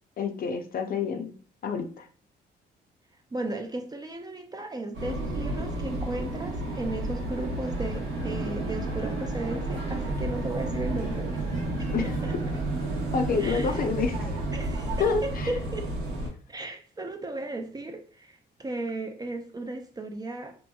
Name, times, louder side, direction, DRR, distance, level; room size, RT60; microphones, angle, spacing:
voice 1, 0.2-1.3 1.6-2.1 11.9-12.1 13.1-14.3 15.0-15.5, left 5 dB, 45° left, 5 dB, 0.5 m, -28 dB
voice 2, 3.3-11.4 11.8-12.3 13.4-13.8 14.5-15.9 16.5-20.6, right 2 dB, 20° right, 5 dB, 0.3 m, -35 dB
sound 1, 4.9-16.3, right 2 dB, 90° right, 0.9 m, -31 dB
sound 2, 9.7-15.1, right 3 dB, 40° right, 0.8 m, -44 dB
2.8 x 2.5 x 2.3 m, 0.43 s
cardioid pair, 90°, 20 cm